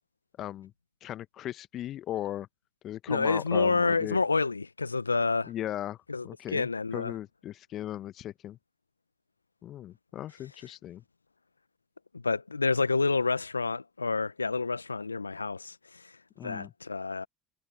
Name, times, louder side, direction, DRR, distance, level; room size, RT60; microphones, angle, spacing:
voice 1, 0.4-0.7 1.0-2.5 2.8-4.2 5.5-6.0 6.2-8.6 9.6-11.0 16.4-16.7, left 12 dB, 50° left, 1.0 m, -37 dB
voice 2, 3.1-5.5 6.1-6.3 6.5-7.1 12.1-16.0 16.4-17.3, left 4 dB, 90° left, 1.0 m, -28 dB
figure-of-eight pair, 60°, 0 cm